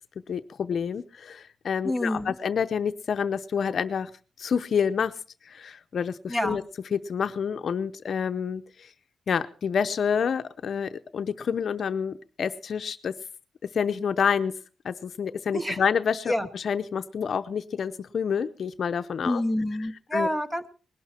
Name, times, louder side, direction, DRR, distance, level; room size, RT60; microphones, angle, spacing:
voice 1, 0.3-4.1 4.4-5.1 5.4-6.6 6.9-8.9 9.3-13.1 13.7-14.5 14.8-19.4 20.1-20.3, left 7 dB, 55° left, 10 dB, 0.7 m, -28 dB
voice 2, 1.8-2.3 6.3-6.6 15.5-15.8 16.3-16.5 19.2-20.7, left 1 dB, 5° right, 11 dB, 0.9 m, -27 dB
20.0 x 12.0 x 4.3 m, 0.37 s
wide cardioid pair, 155°, 0 cm